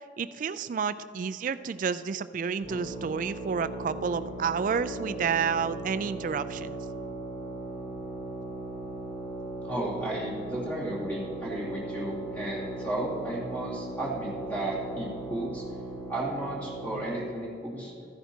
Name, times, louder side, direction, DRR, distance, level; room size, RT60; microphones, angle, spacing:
voice 1, 0.2-6.7, right 6 dB, 45° right, 13 dB, 0.3 m, -30 dB
sound 1, 2.6-17.1, right 2 dB, 30° left, 2.1 m, -38 dB
voice 2, 9.6-15.6 16.1-17.9, right 1 dB, 10° left, -6 dB, 2.5 m, -34 dB
14.0 x 10.0 x 2.8 m, 2.8 s
head